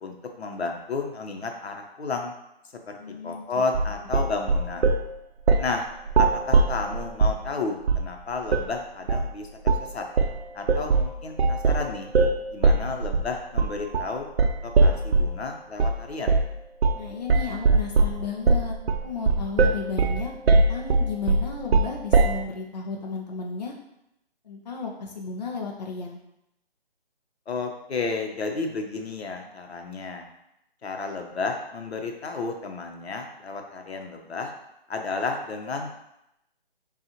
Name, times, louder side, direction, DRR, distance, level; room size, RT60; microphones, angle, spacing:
voice 1, 0.0-2.3 2.9-3.0 3.2-5.0 5.6-5.8 6.2-9.5 9.8-10.0 10.5-12.1 12.5-14.3 14.6-16.4 27.5-30.3 30.8-34.5 34.9-35.9, left 4 dB, 90° left, 3 dB, 0.8 m, -32 dB
voice 2, 3.0-3.4 16.9-18.8 19.0-23.7 24.4-26.2, left 4 dB, 45° left, 0 dB, 0.5 m, -34 dB
sound 1, 3.7-5.1 5.5-5.7 6.1-7.4 7.9-8.1 8.5-8.7 9.1-9.3 9.7-9.9 10.2-15.4 15.8-16.0 16.3-16.5 16.8-17.0 17.3-22.4, right 3 dB, 75° right, 0.5 m, -21 dB
5.4 x 2.4 x 2.9 m, 0.84 s
hypercardioid pair, 175°, 31 cm